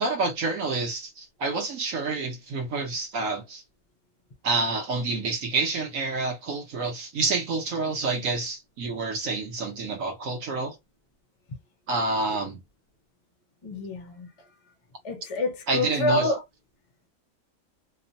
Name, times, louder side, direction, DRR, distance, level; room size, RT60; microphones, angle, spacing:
voice 1, 0.0-3.6 4.4-10.8 11.9-12.6 15.7-16.3, right 3 dB, 65° right, 1.2 m, -28 dB
voice 2, 13.6-14.3 15.0-16.4, left 2 dB, 50° left, 0.4 m, -27 dB
3.0 x 2.1 x 2.6 m
omnidirectional pair, 1.6 m